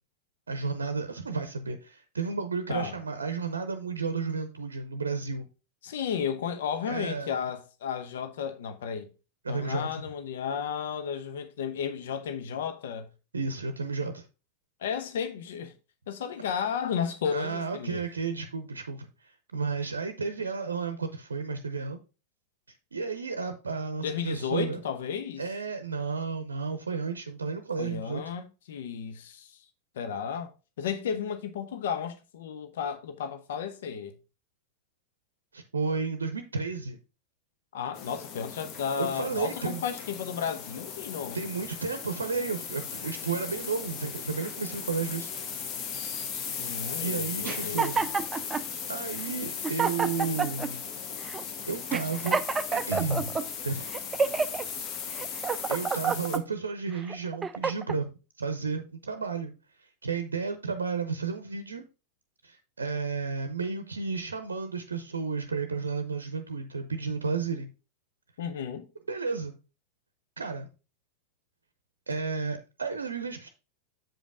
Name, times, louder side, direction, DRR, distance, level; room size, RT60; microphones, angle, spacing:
voice 1, 0.5-5.5 6.8-7.4 9.4-10.0 13.3-14.2 16.6-16.7 17.3-22.0 22.9-24.8 25.4-28.2 35.5-37.0 39.0-39.8 41.3-45.3 47.0-48.1 48.9-50.9 51.7-52.4 52.7-53.8 55.0-55.4 55.7-59.5 59.8-61.9 62.4-67.7 69.1-69.6 70.4-70.7 72.1-73.5, right 5 dB, 75° right, 0.6 m, -32 dB
voice 2, 5.8-9.1 9.5-13.1 14.8-15.7 16.1-18.0 24.0-25.4 27.8-29.5 30.0-30.5 30.8-34.1 37.7-41.4 46.6-47.9 68.4-68.8, left 7 dB, 60° left, 0.7 m, -33 dB
sound 1, 37.9-56.4, left 7 dB, 40° left, 1.2 m, -37 dB
sound 2, 47.4-48.7 49.3-49.4 49.6-50.7 51.3-51.4 51.9-53.4 53.9-54.6 55.1-56.4 57.0-58.0, right 5 dB, 15° right, 0.4 m, -29 dB
7.6 x 5.2 x 3.6 m
figure-of-eight pair, 90°, 0 cm